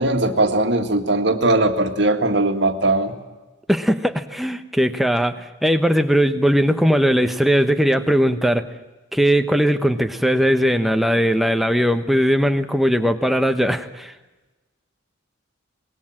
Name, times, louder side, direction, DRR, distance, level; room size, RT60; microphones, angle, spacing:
voice 1, 0.0-3.1, right 2 dB, 60° right, 5 dB, 1.9 m, -19 dB
voice 2, 3.7-8.7 9.1-14.1, equal, ahead, 7 dB, 1.1 m, -19 dB
25.0 x 21.0 x 7.5 m, 1.2 s
head